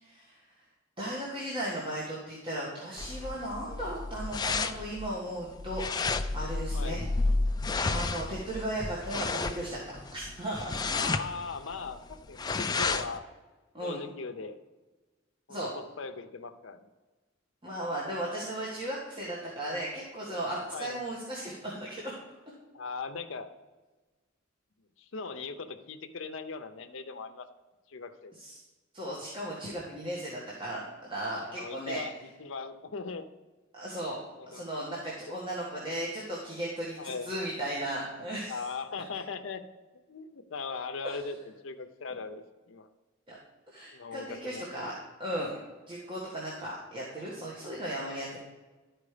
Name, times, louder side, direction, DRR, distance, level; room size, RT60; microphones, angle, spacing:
voice 1, 0.0-0.4 1.0-5.8 6.3-7.0 7.8-9.8 10.1-10.9 12.7-12.9 13.7-14.0 15.5-15.7 17.6-22.1 28.4-28.6 28.9-32.0 33.7-34.2 34.5-38.6 41.0-41.2 43.3-43.4 43.7-44.9 45.2-45.6 45.9-48.4, right 1 dB, 25° right, -5 dB, 1.6 m, -36 dB
sound 1, 3.0-13.2, left 3 dB, 20° left, 0.4 m, -32 dB
voice 2, 10.9-13.2 13.8-14.6 15.5-15.6 16.0-16.9 20.7-21.1 22.7-23.5 25.0-27.5 27.9-28.3 31.5-32.1 32.4-33.3 34.4-34.8 37.0-37.4 38.5-39.6 40.1-41.3 41.6-42.9 43.9-44.6, left 4 dB, 70° left, 8 dB, 0.6 m, -39 dB
11.5 x 4.6 x 5.0 m, 1.2 s
head